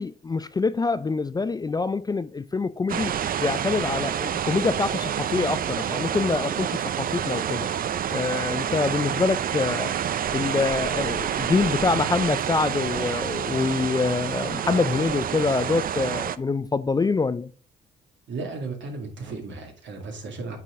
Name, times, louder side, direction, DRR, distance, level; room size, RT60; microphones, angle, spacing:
voice 1, 0.0-3.1 3.4-7.7 8.1-9.9 10.3-17.5, left 4 dB, 20° left, 0.3 m, -25 dB
sound 1, 2.9-16.4, right 9 dB, 45° right, 0.5 m, -28 dB
voice 2, 18.3-20.6, right 3 dB, 70° right, 2.2 m, -35 dB
8.9 x 4.1 x 3.6 m
cardioid pair, 90°, 20 cm